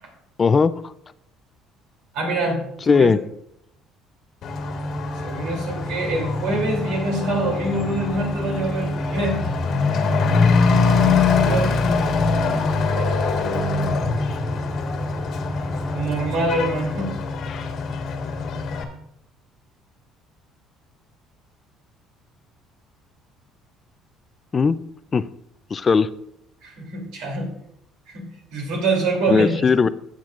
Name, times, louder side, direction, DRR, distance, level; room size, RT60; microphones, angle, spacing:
voice 1, 0.4-0.7 2.9-3.2 24.5-24.8 25.1-25.2 25.7-26.1 29.3-29.9, left 5 dB, 35° left, 15 dB, 0.4 m, -17 dB
voice 2, 2.1-3.1 5.2-9.4 11.1-11.8 12.9-14.1 15.9-17.1 26.6-27.5 28.1-29.7, right 2 dB, 80° right, 1 dB, 2.9 m, -26 dB
Truck / Accelerating revving vroom, 4.4-18.8, left 4 dB, 60° left, 1.4 m, -23 dB
sound 1, 4.5-16.5, equal, 5° left, 0.7 m, -30 dB
14.5 x 7.5 x 2.5 m, 0.75 s
supercardioid pair, 95°, 0 cm